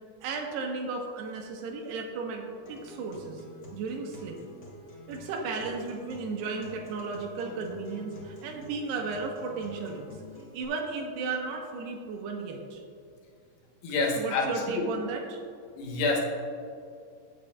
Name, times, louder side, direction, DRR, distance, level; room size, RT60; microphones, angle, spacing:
voice 1, 0.2-3.4 3.7-4.4 5.1-10.1 10.5-12.8 14.2-15.4, right 4 dB, 90° right, 2 dB, 3.1 m, -34 dB
Acoustic guitar, 2.7-10.6, left 1 dB, 60° left, 1.1 m, -48 dB
voice 2, 13.8-14.9 15.8-16.2, left 3 dB, 80° left, -1 dB, 3.4 m, -28 dB
15.5 x 7.5 x 2.4 m, 2.5 s
omnidirectional pair, 4.7 m